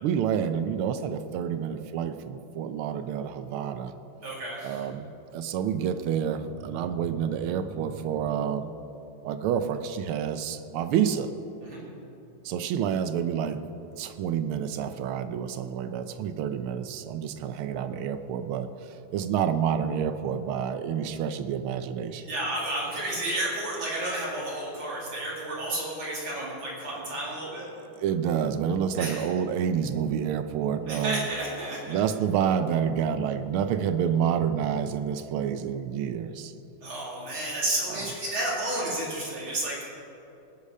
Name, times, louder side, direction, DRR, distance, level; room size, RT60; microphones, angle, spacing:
voice 1, 0.0-3.9 4.6-8.8 9.2-11.3 12.4-13.6 14.0-22.2 27.5-27.7 28.0-31.3 31.9-36.5 37.9-38.1, right 8 dB, 85° right, 10 dB, 1.6 m, -28 dB
voice 2, 4.2-4.8 11.6-11.8 22.2-27.7 29.0-29.3 30.9-32.0 36.8-39.8, right 1 dB, 65° right, -5 dB, 3.5 m, -31 dB
19.5 x 8.3 x 5.5 m, 2.9 s
omnidirectional pair, 2.3 m